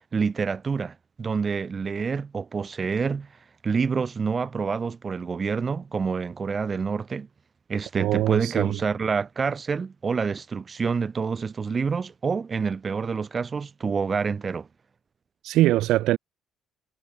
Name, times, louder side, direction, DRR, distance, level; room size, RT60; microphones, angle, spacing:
voice 1, 0.1-3.3 3.6-7.3 7.7-14.7, right 5 dB, 25° right, 2.1 m, -27 dB
voice 2, 7.9-8.8 15.4-16.2, right 15 dB, 75° right, 0.5 m, -22 dB
cardioid pair, 150°, 0 cm